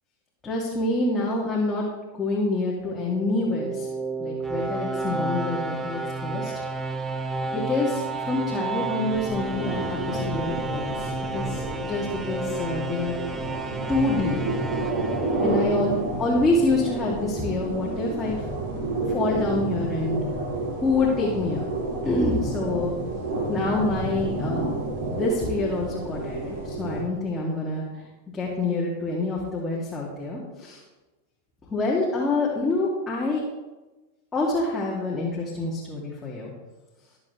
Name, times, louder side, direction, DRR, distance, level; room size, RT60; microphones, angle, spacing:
voice 1, 0.4-1.9 2.2-3.9 4.2-6.5 7.5-13.2 13.9-14.4 15.4-15.9 16.2-18.4 19.1-20.2 20.8-21.7 22.0-22.9 23.5-24.7 25.1-28.0 28.3-30.8 31.7-33.4 34.3-36.5, left 2 dB, 15° left, -5 dB, 2.6 m, -26 dB
sound 1, 2.9-16.0, right 2 dB, 15° right, 0.9 m, -31 dB
sound 2, 9.1-27.0, right 2 dB, 50° right, 3.6 m, -30 dB
21.5 x 7.5 x 3.4 m, 1.1 s
figure-of-eight pair, 90°, 0 cm